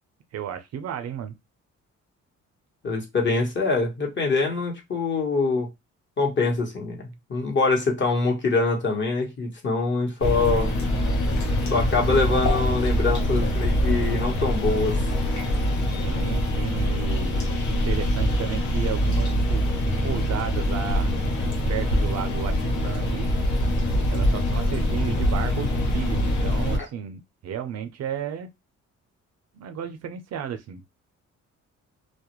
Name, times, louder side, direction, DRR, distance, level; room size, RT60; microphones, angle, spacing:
voice 1, 0.3-1.4 16.0-19.7 20.0-21.2 21.7-23.3 24.1-28.5 29.5-30.8, right 8 dB, 60° right, 0.5 m, -33 dB
voice 2, 2.8-5.7 6.2-10.7 11.7-15.0, left 3 dB, 40° left, 1.1 m, -24 dB
sound 1, 10.2-26.8, left 1 dB, 70° left, 0.9 m, -24 dB
2.3 x 2.1 x 2.9 m
cardioid pair, 90°, 30 cm